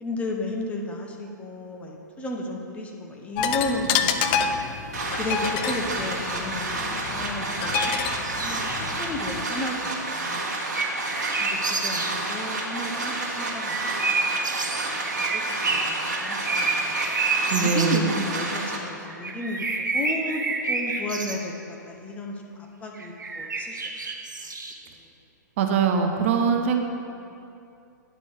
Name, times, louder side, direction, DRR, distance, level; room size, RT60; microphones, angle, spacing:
voice 1, 0.0-4.6 5.2-8.7 9.0-10.5 11.4-14.9 15.2-17.1 17.6-20.4 20.7-21.5 21.9-22.3 22.8-23.9 24.6-24.9 26.3-26.8, left 2 dB, 10° left, 0 dB, 0.8 m, -34 dB
sound 1, 3.4-9.4, left 7 dB, 30° left, 0.4 m, -29 dB
sound 2, 4.9-18.8, right 2 dB, 60° right, 1.5 m, -30 dB
sound 3, 7.7-8.9 10.5-12.2 13.4-18.0 19.1-21.5 23.0-24.7, right 3 dB, 75° right, 0.9 m, -29 dB
voice 2, 17.5-18.1 25.6-26.8, right 6 dB, 40° right, 4 dB, 0.6 m, -22 dB
9.7 x 5.3 x 4.9 m, 2.6 s
figure-of-eight pair, 110°, 10 cm